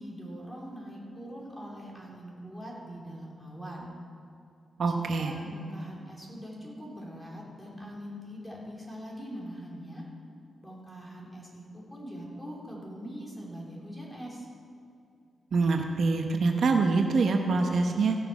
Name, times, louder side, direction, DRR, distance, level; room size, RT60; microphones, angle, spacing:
voice 1, 0.0-3.9 4.9-10.1 10.6-14.5, equal, 5° left, -4 dB, 3.5 m, -42 dB
voice 2, 4.8-5.3 15.5-18.2, right 4 dB, 70° right, 4 dB, 0.9 m, -25 dB
16.0 x 6.7 x 5.9 m, 2.5 s
cardioid pair, 70°, 0 cm